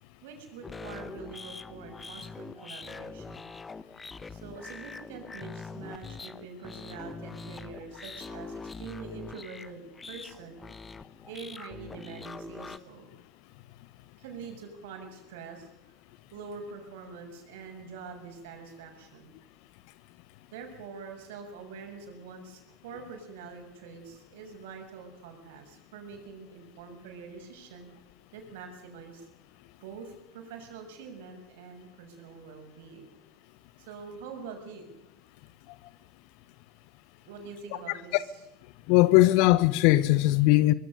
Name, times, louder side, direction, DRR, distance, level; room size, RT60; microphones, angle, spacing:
voice 1, 0.2-3.5 4.3-10.6 11.3-13.1 14.2-15.7 16.3-19.3 20.5-27.9 28.3-29.3 29.8-33.1 33.8-34.9 37.3-38.3, right 5 dB, 65° right, 6.8 m, -45 dB
sound 1, 0.6-12.8, left 4 dB, 20° left, 1.2 m, -43 dB
voice 2, 38.9-40.7, left 17 dB, 55° left, 1.3 m, -20 dB
24.5 x 21.5 x 6.8 m
figure-of-eight pair, 80°, 0 cm